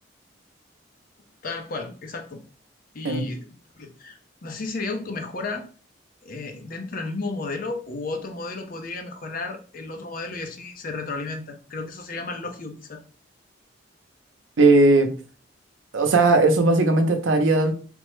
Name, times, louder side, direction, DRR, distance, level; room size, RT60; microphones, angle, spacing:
voice 1, 1.4-2.4 2.9-3.5 3.8-5.7 6.2-13.0, left 3 dB, 50° left, 5 dB, 0.6 m, -33 dB
voice 2, 14.6-15.1 15.9-17.7, right 2 dB, 80° right, 6 dB, 0.6 m, -17 dB
3.3 x 2.0 x 3.1 m, 0.39 s
head